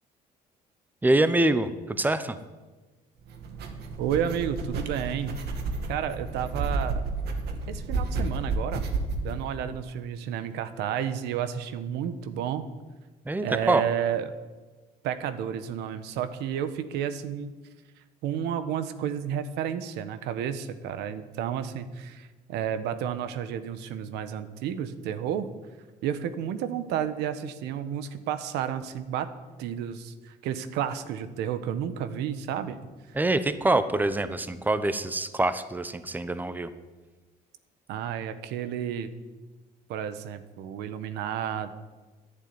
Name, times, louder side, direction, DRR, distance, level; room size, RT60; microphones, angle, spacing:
voice 1, 1.0-2.4 9.6-9.7 13.3-13.8 33.1-36.7, right 2 dB, 10° right, 12 dB, 0.9 m, -25 dB
sound 1, 3.3-9.4, right 3 dB, 75° right, 2.3 m, -31 dB
voice 2, 4.0-5.4 5.9-7.0 7.7-8.8 9.2-12.7 13.4-14.3 15.0-17.5 18.2-25.5 26.0-29.3 29.6-32.8 37.9-39.1 39.9-41.7, right 9 dB, 90° right, 11 dB, 1.2 m, -31 dB
11.0 x 11.0 x 9.6 m, 1.3 s
cardioid pair, 110°, 17 cm